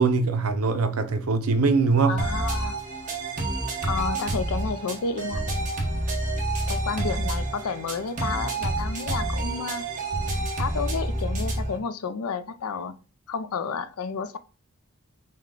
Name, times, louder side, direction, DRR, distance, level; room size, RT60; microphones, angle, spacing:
voice 1, 0.0-2.2, right 4 dB, 80° right, 0.7 m, -22 dB
voice 2, 2.1-2.8 3.8-5.4 6.7-9.9 10.6-12.9 13.3-14.4, left 5 dB, 80° left, 0.5 m, -31 dB
sound 1, 2.2-11.8, right 2 dB, 35° right, 1.2 m, -28 dB
6.2 x 2.3 x 3.8 m
head